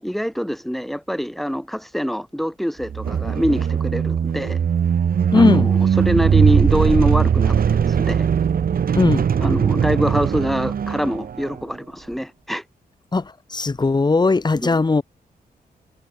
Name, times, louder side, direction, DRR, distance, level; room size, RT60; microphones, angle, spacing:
voice 1, 0.0-4.6 5.3-8.3 9.4-12.6 14.6-14.8, equal, ahead, 5.7 m, -24 dB
sound 1, 2.8-11.6, right 7 dB, 65° right, 4.8 m, -19 dB
voice 2, 5.3-5.7 8.9-9.2 13.1-13.2 13.5-15.0, left 3 dB, 25° left, 3.4 m, -18 dB
wide cardioid pair, 130°, 16 cm